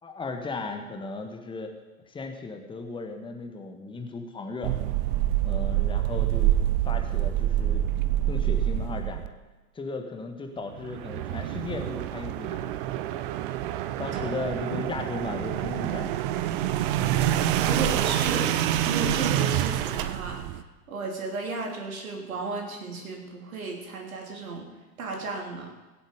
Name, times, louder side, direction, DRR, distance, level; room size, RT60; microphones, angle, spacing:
voice 1, 0.0-1.7 2.1-4.8 5.4-7.8 8.3-9.2 9.7-12.8 14.0-16.2, left 3 dB, 10° left, 4 dB, 1.7 m, -36 dB
jf Automobile Sequence-Nissan Xterra, 4.6-9.3 10.7-20.6, right 12 dB, 35° right, 0.8 m, -27 dB
voice 2, 17.6-18.5 18.9-20.4 20.9-24.7 25.0-25.7, right 3 dB, 60° right, 1 dB, 3.4 m, -34 dB
23.5 x 7.8 x 5.2 m, 1.2 s
figure-of-eight pair, 95°, 47 cm